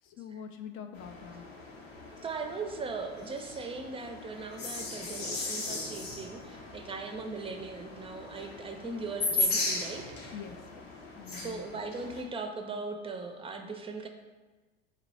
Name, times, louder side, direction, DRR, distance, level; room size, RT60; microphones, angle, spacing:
voice 1, 0.0-1.5 10.3-10.9 11.2-11.6, left 8 dB, 45° left, 6 dB, 0.4 m, -44 dB
sound 1, 0.9-12.2, left 2 dB, 80° left, 0.9 m, -37 dB
voice 2, 2.2-10.1 11.3-14.1, right 4 dB, 20° right, 5 dB, 0.5 m, -39 dB
4.0 x 3.0 x 4.2 m, 1.3 s
hypercardioid pair, 75°, 31 cm